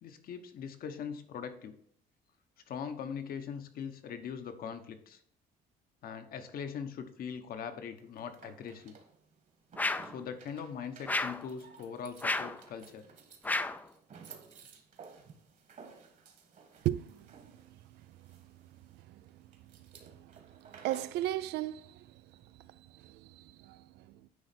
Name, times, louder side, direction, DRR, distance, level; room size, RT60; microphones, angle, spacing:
voice 1, 0.0-1.8 2.7-5.2 6.0-9.0 10.0-13.1, left 7 dB, 60° left, 1.0 m, -41 dB
sound 1, 8.0-21.2, right 5 dB, 50° right, 1.5 m, -56 dB
sound 2, 9.8-10.2 11.1-11.5 12.2-12.6 13.4-13.9, left 2 dB, 10° left, 0.4 m, -32 dB
voice 2, 20.7-22.0 22.9-23.8, right 14 dB, 80° right, 0.4 m, -34 dB
9.5 x 3.2 x 5.9 m
cardioid pair, 110°, 17 cm